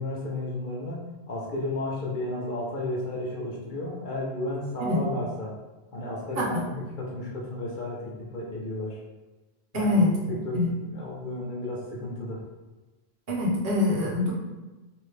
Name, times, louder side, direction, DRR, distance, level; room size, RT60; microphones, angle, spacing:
voice 1, 0.0-5.5 5.9-9.0 9.7-9.9 10.3-12.4, left 1 dB, 55° left, -3 dB, 0.8 m, -33 dB
voice 2, 6.4-6.7 9.7-10.1 10.5-10.7 13.3-14.3, left 2 dB, 65° right, -3 dB, 1.0 m, -24 dB
3.1 x 2.7 x 3.2 m, 1.2 s
omnidirectional pair, 1.1 m